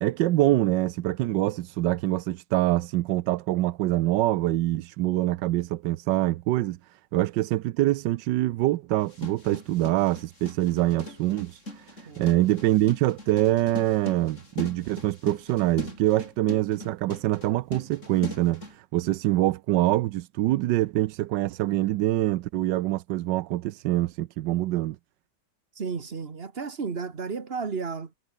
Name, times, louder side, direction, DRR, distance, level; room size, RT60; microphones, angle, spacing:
voice 1, 0.0-6.8 7.1-25.0, right 15 dB, 90° right, 1.3 m, -25 dB
sound 1, 9.0-18.7, left 2 dB, 45° left, 7.0 m, -40 dB
voice 2, 25.7-28.1, right 5 dB, 35° right, 1.7 m, -33 dB
omnidirectional pair, 1.9 m